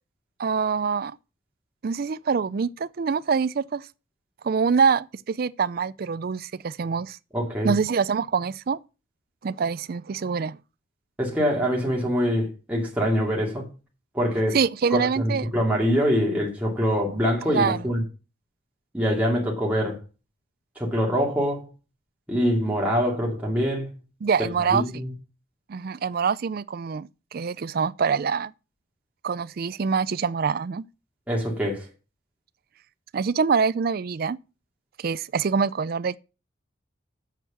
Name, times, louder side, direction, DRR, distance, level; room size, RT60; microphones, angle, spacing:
voice 1, 0.4-1.2 1.8-3.8 4.4-7.2 7.6-8.8 9.4-10.6 14.5-15.4 17.5-17.8 24.2-24.8 25.7-28.5 29.2-30.8 33.1-34.4 35.0-36.2, right 5 dB, 50° right, 0.4 m, -25 dB
voice 2, 7.3-7.7 11.2-13.7 14.1-14.6 14.9-18.0 18.9-20.0 20.8-21.7 22.3-23.9 24.7-25.1 31.3-31.9, equal, 5° right, 2.4 m, -24 dB
8.1 x 6.3 x 7.1 m
head